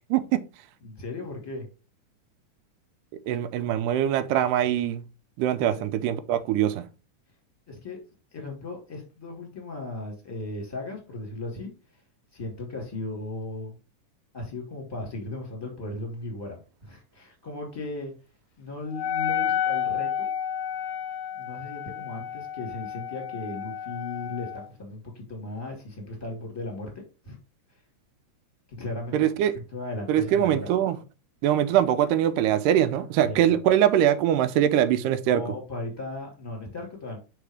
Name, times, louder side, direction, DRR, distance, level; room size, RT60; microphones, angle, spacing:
voice 1, 0.1-0.4 3.3-5.1 5.4-6.9 29.1-29.6 30.1-31.0 31.4-35.6, right 11 dB, 90° right, 2.2 m, -23 dB
voice 2, 0.8-1.7 5.7-5.9 7.7-8.0 8.3-11.7 12.3-13.7 14.3-18.1 18.6-20.3 21.4-26.9 27.2-27.4 28.8-29.1 29.7-30.7 33.2-33.6 35.3-37.2, left 2 dB, 10° left, 2.0 m, -36 dB
Wind instrument woodwind instrument, 18.9-24.7, left 9 dB, 80° left, 1.7 m, -31 dB
5.0 x 4.4 x 4.8 m
omnidirectional pair, 3.7 m